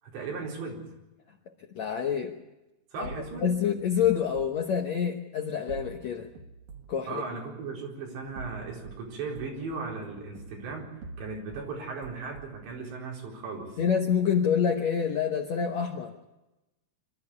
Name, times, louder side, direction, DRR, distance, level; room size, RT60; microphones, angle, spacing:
voice 1, 0.0-0.9 2.9-3.5 7.1-10.9 11.2-13.8, right 4 dB, 90° right, -1 dB, 6.6 m, -37 dB
voice 2, 1.7-2.4 3.0-3.1 3.4-6.3 6.9-7.4 13.8-16.1, left 7 dB, 85° left, 2 dB, 1.5 m, -27 dB
sound 1, 3.0-4.5 5.7-7.0 8.2-9.0 9.4-11.7 12.0-12.7, right 4 dB, 60° right, 3.1 m, -45 dB
25.5 x 13.0 x 9.6 m, 1.0 s
omnidirectional pair, 4.9 m